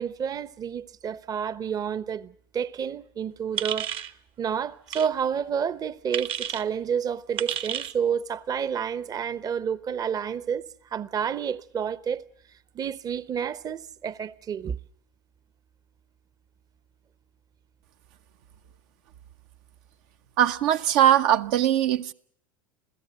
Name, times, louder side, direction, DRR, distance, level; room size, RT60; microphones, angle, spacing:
voice 1, 0.0-3.9 4.4-12.2 12.7-14.8, right 7 dB, 30° right, 0.9 m, -30 dB
sound 1, 3.6-4.1 4.9-5.1 6.1-6.6 7.4-7.9, right 9 dB, 50° right, 1.2 m, -31 dB
voice 2, 20.4-22.1, right 11 dB, 65° right, 0.9 m, -21 dB
27.5 x 16.5 x 8.0 m
hypercardioid pair, 80°, 12 cm